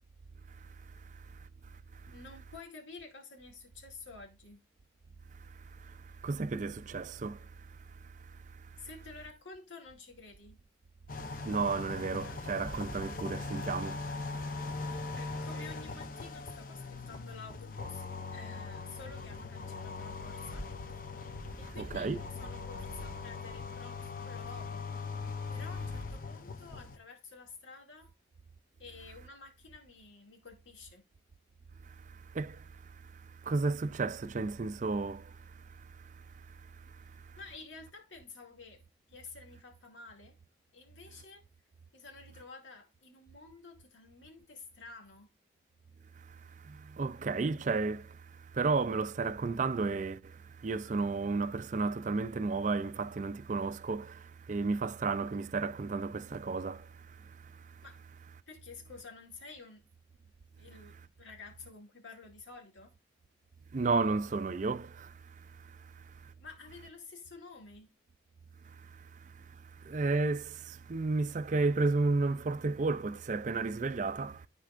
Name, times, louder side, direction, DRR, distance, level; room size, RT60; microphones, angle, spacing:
voice 1, 2.1-4.6 8.8-10.6 14.8-18.0 18.3-20.7 21.6-24.9 25.5-28.1 28.8-31.0 37.4-38.8 39.1-40.4 40.7-41.4 41.9-45.3 57.8-58.0 58.5-59.8 60.6-62.9 66.4-67.9, left 4 dB, 85° left, 2.4 m, -51 dB
voice 2, 5.7-7.8 8.0-8.1 8.7-8.8 11.3-15.1 21.8-22.2 31.9-37.4 46.3-57.7 63.7-66.3 68.7-69.5 69.8-74.5, right 3 dB, 40° right, 0.4 m, -34 dB
sound 1, 11.1-27.0, left 4 dB, 45° left, 0.7 m, -40 dB
13.5 x 4.6 x 2.5 m
head